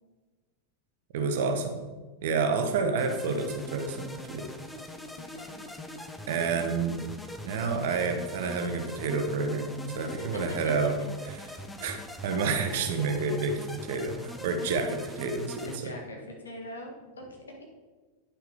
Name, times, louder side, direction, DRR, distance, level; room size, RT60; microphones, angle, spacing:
voice 1, 1.1-1.8 2.2-4.5 6.3-7.0 7.4-11.0 11.8-13.5 13.8-15.9, right 4 dB, 55° right, 7 dB, 0.9 m, -29 dB
sound 1, 3.0-15.8, left 1 dB, 5° left, 0.6 m, -42 dB
voice 2, 5.3-5.6 10.0-10.6 13.2-13.3 15.6-17.3, left 1 dB, 70° left, 0 dB, 1.6 m, -42 dB
9.7 x 5.8 x 3.5 m, 1.3 s
figure-of-eight pair, 90°, 0 cm